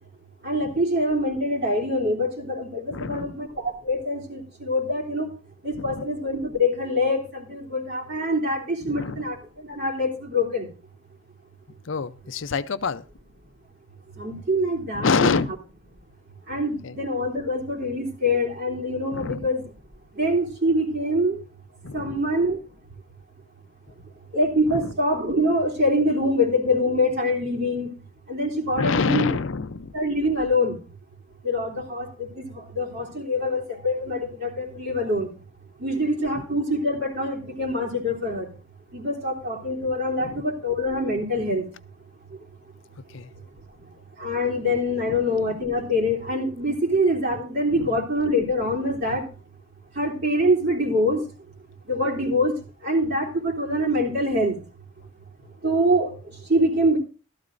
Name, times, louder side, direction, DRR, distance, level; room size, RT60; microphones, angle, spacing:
voice 1, 0.4-5.3 5.6-10.7 14.2-15.5 16.5-19.6 20.1-21.4 21.9-22.6 24.3-27.9 28.3-29.4 29.9-30.8 31.4-35.3 35.8-38.5 38.9-41.6 44.2-49.3 49.9-51.2 51.8-52.6 52.8-54.6 55.6-57.0, left 1 dB, 50° right, -1 dB, 3.2 m, -24 dB
voice 2, 2.9-3.4 5.8-6.0 8.9-9.2 11.9-13.0 14.9-15.5 16.8-16.9 19.1-19.5 21.8-22.2 24.7-24.9 28.7-29.9 36.4-36.5 40.2-40.4 43.1-43.3 45.1-45.2 47.7-47.9, left 4 dB, 65° left, 13 dB, 0.6 m, -26 dB
15.0 x 13.0 x 2.6 m, 0.35 s
head